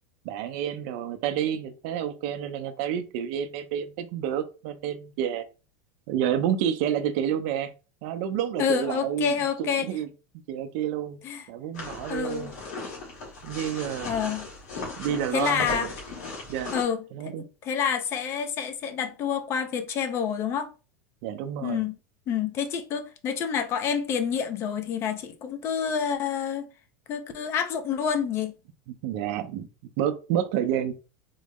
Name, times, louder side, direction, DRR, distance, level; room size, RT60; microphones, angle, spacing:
voice 1, 0.2-5.4 6.1-7.7 8.0-10.1 10.5-11.2 11.5-12.5 13.4-14.1 15.0-15.9 16.5-16.7 17.1-17.5 21.2-21.8 28.9-29.7 30.0-30.9, right 10 dB, 50° right, 0.5 m, -29 dB
voice 2, 8.6-9.9 11.2-11.4 12.1-12.5 14.0-14.5 15.3-15.9 16.7-17.0 17.6-20.7 21.6-22.0 22.3-26.7 27.1-28.5, left 7 dB, 30° left, 0.4 m, -28 dB
sound 1, 11.7-16.8, left 3 dB, 90° left, 1.6 m, -37 dB
3.8 x 2.0 x 3.5 m
supercardioid pair, 160°, 9 cm